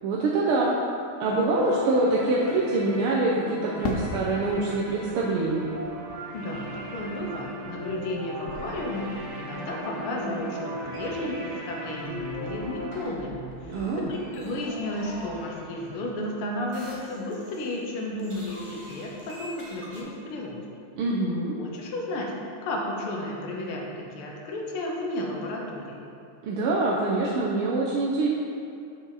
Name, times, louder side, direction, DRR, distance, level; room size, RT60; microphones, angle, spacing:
voice 1, 0.0-0.8 1.2-5.7 13.7-14.1 21.0-21.6 26.4-28.3, right 2 dB, 80° right, -4 dB, 1.6 m, -25 dB
sound 1, 1.3-13.0, right 1 dB, 60° right, 1.4 m, -37 dB
Fireworks, 3.8-8.2 8.5-9.3, left 3 dB, 65° left, 1.0 m, -38 dB
voice 2, 6.3-20.6 21.6-22.3 22.6-26.1, left 1 dB, 80° left, -1 dB, 1.9 m, -33 dB
sound 2, 8.5-10.5 10.8-11.5 11.9-16.3 16.7-17.9 18.2-20.0, right 1 dB, 20° right, 0.9 m, -44 dB
7.5 x 6.4 x 4.0 m, 2.5 s
omnidirectional pair, 2.4 m